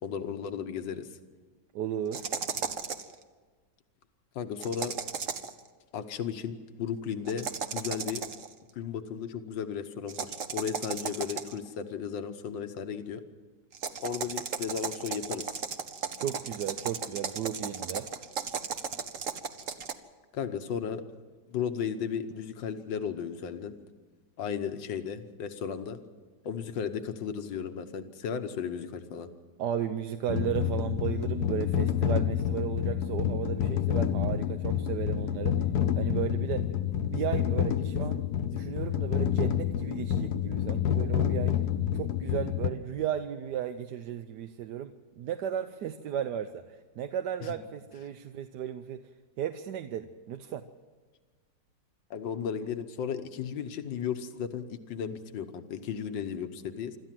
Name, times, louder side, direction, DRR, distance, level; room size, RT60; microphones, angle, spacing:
voice 1, 0.0-1.1 4.3-5.0 5.9-8.2 8.7-13.2 14.0-15.6 20.3-21.0 21.5-23.7 24.4-26.0 26.4-29.3 47.4-47.6 52.1-57.0, left 7 dB, 90° left, 8 dB, 1.8 m, -35 dB
voice 2, 1.7-2.3 16.2-18.1 29.6-35.6 36.0-36.7 37.1-38.2 38.5-41.5 41.9-44.9 45.2-46.6 47.0-49.0 49.4-50.6, right 10 dB, 70° right, 8 dB, 1.3 m, -34 dB
sound 1, 2.1-3.2 4.6-5.6 7.3-8.5 10.1-11.7 13.7-19.9, right 6 dB, 50° right, 1.3 m, -35 dB
sound 2, 30.3-42.7, left 9 dB, 65° left, 1.3 m, -28 dB
26.5 x 13.5 x 7.6 m, 1.4 s
omnidirectional pair, 2.0 m